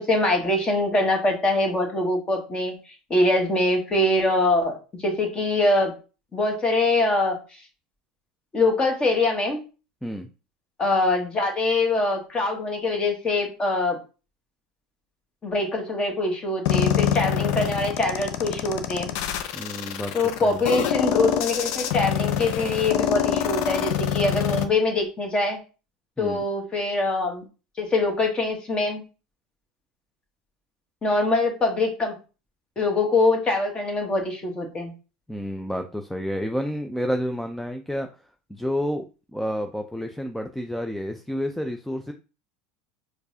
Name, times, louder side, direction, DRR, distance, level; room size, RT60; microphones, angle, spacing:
voice 1, 0.0-2.7 3.1-5.9 6.3-7.4 8.5-9.6 10.8-14.0 15.4-19.1 20.1-25.6 26.2-27.4 27.8-29.0 31.0-32.1 32.8-34.9, left 2 dB, 25° left, 3 dB, 1.3 m, -23 dB
sound 1, 16.7-24.7, left 9 dB, 65° left, 0.5 m, -25 dB
voice 2, 19.5-20.6 26.2-26.4 35.3-38.1 38.5-39.0 39.3-42.1, equal, 5° left, 5 dB, 0.4 m, -30 dB
4.6 x 2.3 x 2.8 m, 0.33 s
hypercardioid pair, 90°, 4 cm